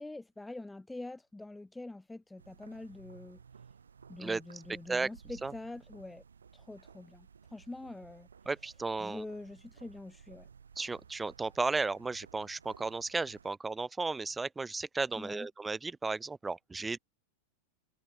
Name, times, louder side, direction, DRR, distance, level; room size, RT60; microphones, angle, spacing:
voice 1, 0.0-3.4 4.1-6.2 6.5-8.3 9.0-10.5 15.2-15.5, left 2 dB, 5° left, 1.1 m, -45 dB
sound 1, 2.4-13.5, right 6 dB, 70° right, 4.5 m, -56 dB
voice 2, 8.5-9.2 10.8-17.0, right 3 dB, 10° right, 0.4 m, -34 dB
figure-of-eight pair, 90°, 0 cm